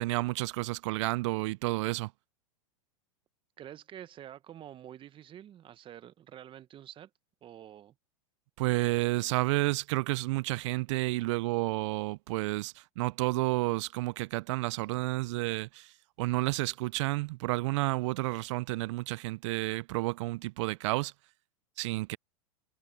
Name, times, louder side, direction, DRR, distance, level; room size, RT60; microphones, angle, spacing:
voice 1, 0.0-2.1 8.6-15.9 16.2-21.1 21.8-22.2, right 21 dB, 55° right, 0.5 m, -31 dB
voice 2, 3.6-7.1 7.4-7.9, right 11 dB, 30° right, 1.1 m, -48 dB
hypercardioid pair, 110°, 18 cm